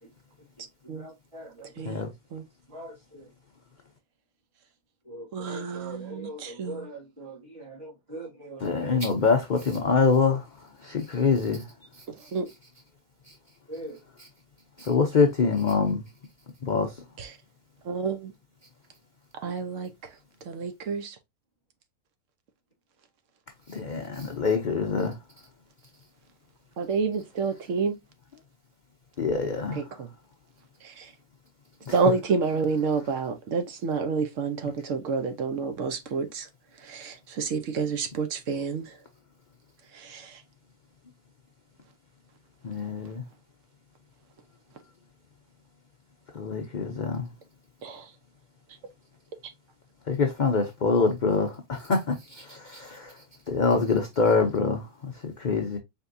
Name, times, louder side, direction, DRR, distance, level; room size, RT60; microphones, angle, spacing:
voice 1, 0.8-1.4 2.7-3.3 5.0-9.0 13.7-14.0, right 1 dB, 45° right, 2.7 m, -41 dB
voice 2, 5.3-6.9 12.3-12.5 17.2-17.3 17.9-18.3 19.4-19.9 20.5-21.2 26.8-28.0 29.8-30.1 30.8-31.1 31.9-36.5 36.8-38.8 39.9-40.3 47.8-48.0, right 5 dB, 65° right, 1.0 m, -29 dB
voice 3, 8.6-10.4 10.8-11.6 14.2-14.3 14.8-16.0 16.6-16.9 23.7-25.2 29.2-29.8 31.9-32.0 42.6-43.2 46.3-47.3 50.1-53.1 53.5-55.8, left 4 dB, 50° left, 0.5 m, -25 dB
4.5 x 3.4 x 2.5 m
omnidirectional pair, 1.5 m